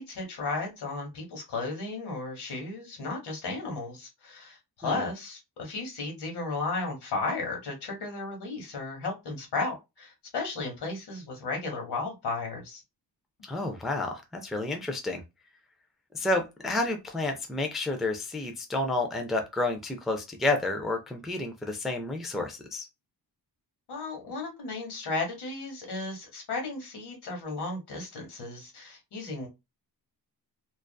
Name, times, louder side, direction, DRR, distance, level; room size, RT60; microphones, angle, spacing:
voice 1, 0.0-12.8 23.9-29.5, left 3 dB, 80° left, 1.2 m, -34 dB
voice 2, 13.4-15.2 16.1-22.9, left 2 dB, ahead, 0.3 m, -30 dB
2.4 x 2.4 x 2.2 m
cardioid pair, 105°, 40 cm